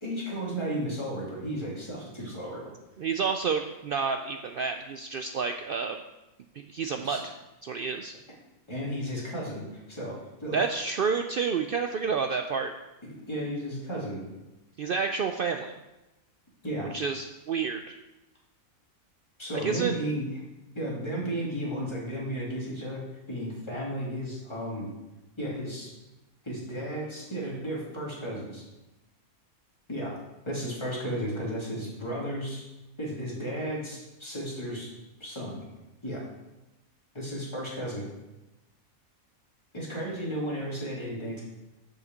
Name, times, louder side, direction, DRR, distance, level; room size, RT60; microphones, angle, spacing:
voice 1, 0.0-2.7 7.0-7.2 8.7-9.6 9.9-10.1 10.4-10.6 13.3-14.2 16.6-16.9 19.4-20.3 20.7-23.0 23.3-24.9 25.4-25.9 26.4-28.6 29.9-30.1 30.5-32.6 33.0-34.9 35.2-35.6 36.0-36.2 37.1-38.0 39.7-41.4, right 1 dB, 20° left, -5 dB, 2.6 m, -33 dB
voice 2, 3.0-6.0 6.7-7.3 7.6-8.1 10.5-12.7 14.8-15.7 16.9-18.0 19.6-19.9, right 5 dB, 80° right, 6 dB, 0.5 m, -29 dB
6.7 x 5.6 x 7.3 m, 1.0 s
omnidirectional pair, 1.5 m